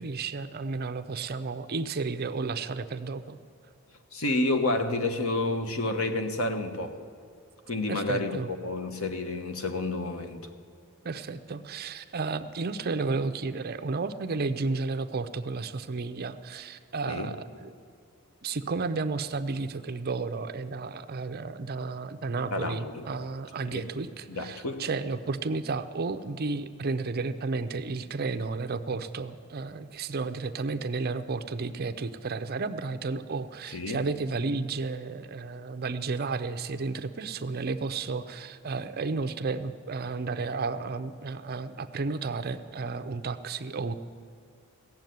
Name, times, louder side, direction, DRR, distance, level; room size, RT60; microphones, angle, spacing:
voice 1, 0.0-3.4 7.9-8.5 11.0-17.7 18.4-43.9, right 4 dB, 45° right, 11 dB, 0.6 m, -32 dB
voice 2, 4.1-7.0 7.7-10.4 17.1-17.3 22.5-23.0 23.6-23.9 24.3-24.8 33.7-34.0, left 2 dB, 70° left, 7 dB, 1.2 m, -30 dB
16.5 x 7.4 x 9.3 m, 2.4 s
head